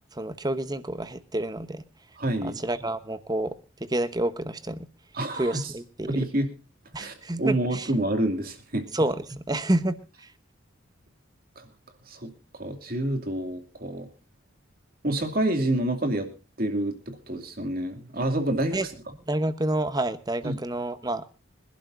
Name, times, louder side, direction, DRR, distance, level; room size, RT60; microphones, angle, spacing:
voice 1, 0.1-1.8 2.4-3.5 3.8-4.9 5.3-6.2 6.9-7.9 8.9-10.3 18.7-18.9 19.3-21.2, right 1 dB, 20° right, 13 dB, 1.0 m, -29 dB
voice 2, 2.2-2.6 5.1-5.7 6.1-6.5 7.0-8.9 11.6-11.7 12.1-14.1 15.0-16.3 16.6-18.8 20.4-20.6, right 1 dB, 45° right, 5 dB, 2.6 m, -28 dB
25.5 x 11.5 x 2.6 m, 0.32 s
head